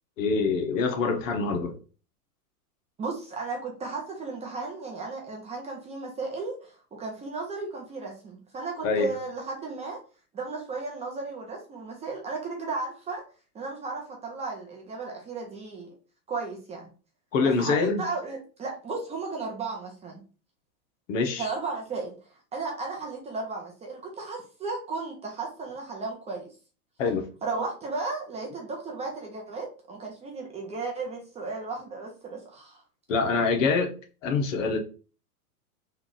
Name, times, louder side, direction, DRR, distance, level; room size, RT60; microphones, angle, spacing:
voice 1, 0.2-1.7 8.8-9.1 17.3-18.0 21.1-21.5 27.0-27.3 33.1-33.9 34.2-34.8, left 4 dB, 55° left, 1.0 m, -25 dB
voice 2, 3.0-10.0 10.3-13.2 13.5-15.9 16.3-16.9 17.4-20.2 21.4-26.5 27.4-32.8, right 3 dB, 15° right, 0.6 m, -35 dB
3.4 x 2.4 x 3.8 m
hypercardioid pair, 125°, 45 cm